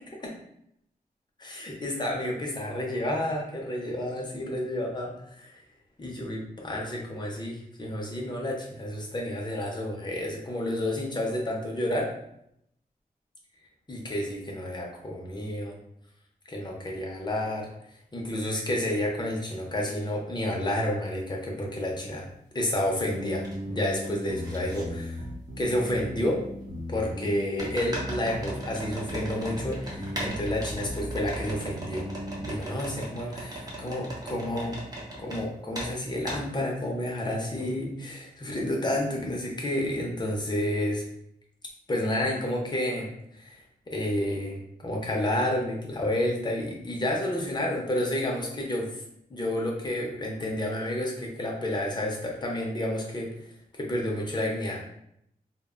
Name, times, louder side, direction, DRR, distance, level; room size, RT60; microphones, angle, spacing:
voice 1, 1.4-5.6 6.0-12.1 13.9-15.8 16.5-17.7 18.1-22.3 22.5-25.2 25.6-26.4 26.9-32.1 32.4-34.8 35.2-41.0 41.9-43.6 43.9-49.0 49.3-53.3 53.8-54.9, left 1 dB, 25° left, -1 dB, 0.6 m, -30 dB
sound 1, 22.1-22.2 22.7-23.6 23.8-24.8 25.8-25.9 27.6-35.4 35.7-35.9 36.3-36.4, right 1 dB, 25° right, 0.7 m, -38 dB
sound 2, 23.1-32.6, equal, 80° right, 0.7 m, -37 dB
2.0 x 2.0 x 3.6 m, 0.75 s
wide cardioid pair, 125°, 16 cm